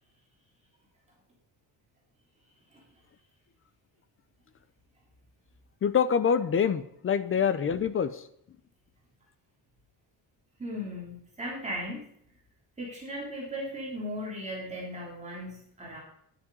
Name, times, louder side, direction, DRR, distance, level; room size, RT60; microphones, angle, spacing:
voice 1, 5.8-8.2, left 7 dB, 30° left, 13 dB, 0.6 m, -25 dB
voice 2, 10.6-12.1 12.8-16.0, equal, 15° right, -4 dB, 3.1 m, -37 dB
13.0 x 9.9 x 5.4 m, 0.70 s
cardioid pair, 180°, 42 cm